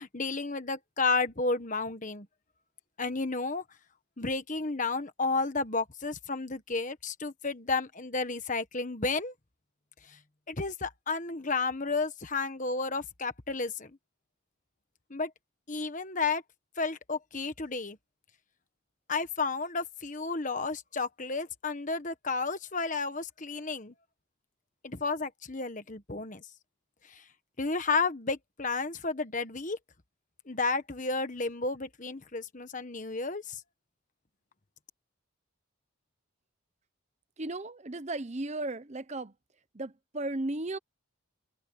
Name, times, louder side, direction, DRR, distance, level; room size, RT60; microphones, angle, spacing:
voice 1, 0.0-2.3 3.0-3.6 4.2-9.3 10.1-10.2 10.5-13.9 15.1-15.3 15.7-16.4 16.8-18.0 19.1-23.9 24.8-26.4 27.1-27.2 27.6-29.8 30.5-33.6, left 3 dB, 35° left, 1.4 m, -32 dB
voice 2, 37.4-39.3 39.7-40.8, right 2 dB, 30° right, 0.8 m, -35 dB
head